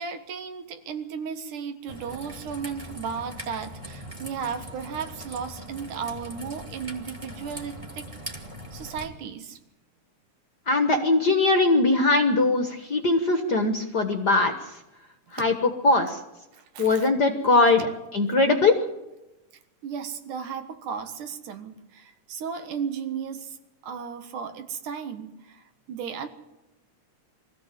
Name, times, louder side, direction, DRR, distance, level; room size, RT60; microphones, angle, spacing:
voice 1, 0.0-8.3 8.7-9.6 16.5-17.1 17.8-17.9 19.8-23.6 23.8-26.3, right 6 dB, 85° right, 8 dB, 3.0 m, -35 dB
Raindrop / Trickle dribble, 1.9-9.1, equal, 10° right, 1.7 m, -41 dB
voice 2, 10.7-14.8 15.3-16.2 16.8-18.8, left 3 dB, 50° left, 5 dB, 1.3 m, -21 dB
23.5 x 15.0 x 7.6 m, 0.97 s
omnidirectional pair, 3.5 m